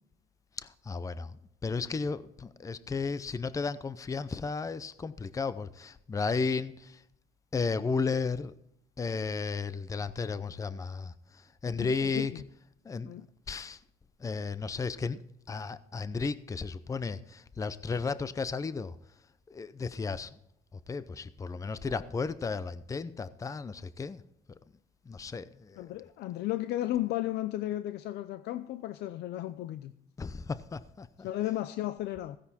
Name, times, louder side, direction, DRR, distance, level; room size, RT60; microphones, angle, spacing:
voice 1, 0.6-1.4 1.6-7.0 7.5-8.5 9.0-11.1 11.6-12.3 12.9-13.1 13.5-13.8 14.2-18.9 19.5-20.3 20.9-24.2 25.1-25.9 30.2-31.3, left 4 dB, 20° left, 0.6 m, -34 dB
voice 2, 11.8-12.4 13.0-13.3 25.8-29.9 31.2-32.4, left 14 dB, 75° left, 0.6 m, -34 dB
15.5 x 10.0 x 4.2 m
cardioid pair, 110°, 17 cm